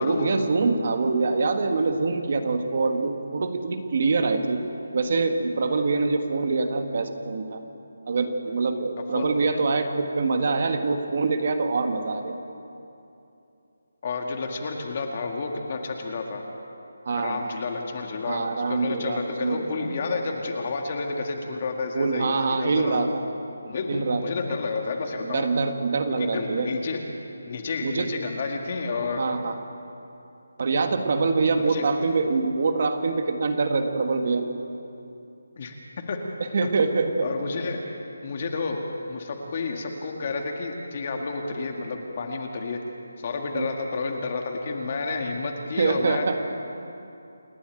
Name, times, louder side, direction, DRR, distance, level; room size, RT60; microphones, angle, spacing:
voice 1, 0.0-4.6 4.9-7.6 8.1-12.4 17.0-17.5 18.2-19.9 21.9-23.2 23.9-24.4 25.2-26.7 27.8-28.1 29.1-29.6 30.6-34.5 36.4-37.3 43.5-43.7 45.6-46.4, right 4 dB, 40° right, 6 dB, 1.5 m, -25 dB
voice 2, 14.0-16.4 17.2-23.1 23.6-25.5 26.2-27.0 27.5-29.2 31.6-31.9 35.6-35.8 36.1-36.2 37.2-38.8 39.1-42.8 43.2-46.3, left 4 dB, 30° left, 3 dB, 1.9 m, -30 dB
28.5 x 11.5 x 9.0 m, 2.8 s
hypercardioid pair, 175°, 0 cm